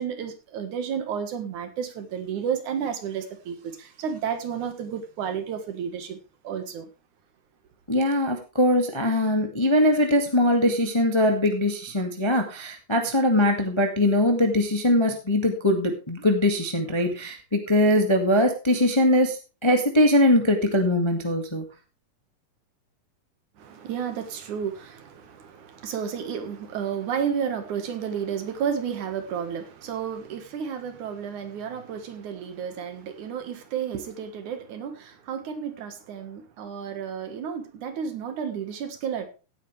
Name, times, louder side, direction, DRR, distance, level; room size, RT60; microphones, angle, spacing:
voice 1, 0.0-6.2 6.4-6.9 23.6-39.3, right 7 dB, 65° right, 2.8 m, -32 dB
voice 2, 7.9-21.6, left 1 dB, 15° left, 1.2 m, -21 dB
16.5 x 9.3 x 3.3 m
omnidirectional pair, 3.9 m